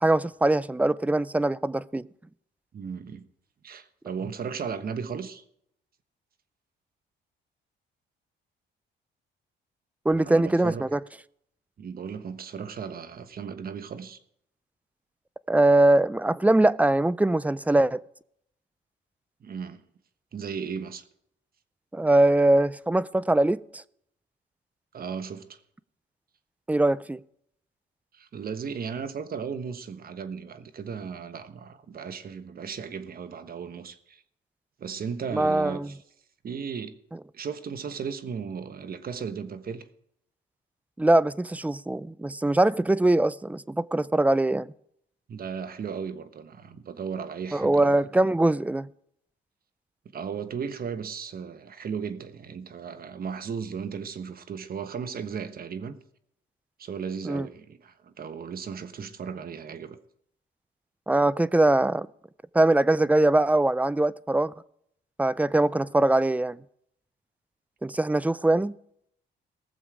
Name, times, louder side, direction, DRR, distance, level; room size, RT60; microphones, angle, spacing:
voice 1, 0.0-2.0 10.1-11.0 15.5-18.0 21.9-23.8 26.7-27.2 35.3-35.9 41.0-44.7 47.5-48.9 57.2-57.5 61.1-62.1 62.5-64.5 65.2-66.6 67.8-68.7, right 2 dB, 5° right, 0.4 m, -22 dB
voice 2, 2.7-3.3 3.6-5.4 10.2-10.9 11.8-14.2 19.4-19.8 20.3-21.0 24.9-25.6 28.1-34.2 34.8-36.0 36.4-37.0 37.3-39.8 45.3-48.1 50.1-56.0 56.8-60.0, right 6 dB, 50° right, 1.2 m, -36 dB
19.5 x 7.1 x 4.8 m
cardioid pair, 90°, 20 cm